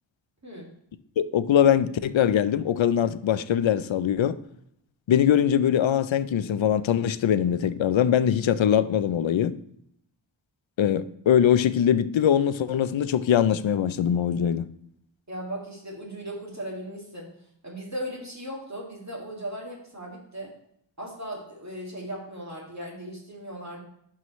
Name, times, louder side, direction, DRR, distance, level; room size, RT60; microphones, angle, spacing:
voice 1, 1.2-4.4 5.1-9.6 10.8-14.7, left 9 dB, 85° left, 0.5 m, -22 dB
voice 2, 15.3-17.3 17.6-20.5 21.0-23.8, right 1 dB, 35° right, 2.2 m, -37 dB
11.5 x 4.8 x 3.1 m
wide cardioid pair, 65°, 45 cm